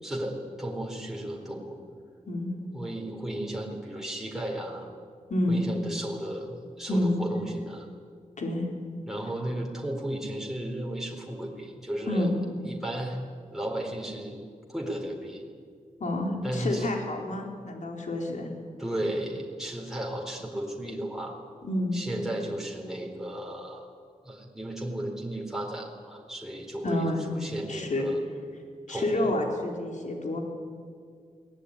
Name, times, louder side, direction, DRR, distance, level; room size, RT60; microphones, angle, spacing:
voice 1, 0.0-1.8 2.7-4.9 5.5-7.9 9.1-12.3 12.6-13.2 13.5-15.4 16.4-16.9 18.8-21.3 21.9-23.9 24.2-27.1 27.3-28.2 28.9-29.3, right 1 dB, 5° right, -1 dB, 4.2 m, -34 dB
voice 2, 5.3-5.6 6.9-7.1 8.4-8.6 12.1-12.3 16.0-18.5 21.6-22.0 26.8-27.2 27.7-28.0 28.9-30.4, left 1 dB, 70° left, 1 dB, 4.3 m, -28 dB
22.0 x 19.0 x 9.9 m, 2.1 s
wide cardioid pair, 90°, 13 cm